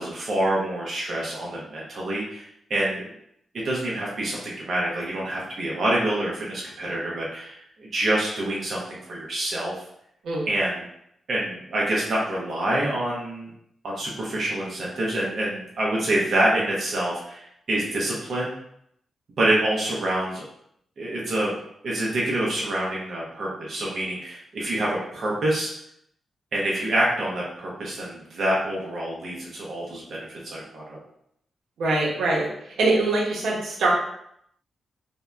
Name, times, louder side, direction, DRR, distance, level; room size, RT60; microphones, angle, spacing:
voice 1, 0.0-3.0 3.5-9.8 10.5-10.8 11.3-13.5 13.8-18.5 19.4-20.4 21.0-21.5 21.8-25.7 26.5-31.0, right 1 dB, 50° right, -5 dB, 0.5 m, -26 dB
voice 2, 31.8-32.5 32.8-33.9, right 2 dB, 90° right, -4 dB, 0.7 m, -23 dB
2.7 x 2.1 x 2.2 m, 0.72 s
wide cardioid pair, 170°, 0 cm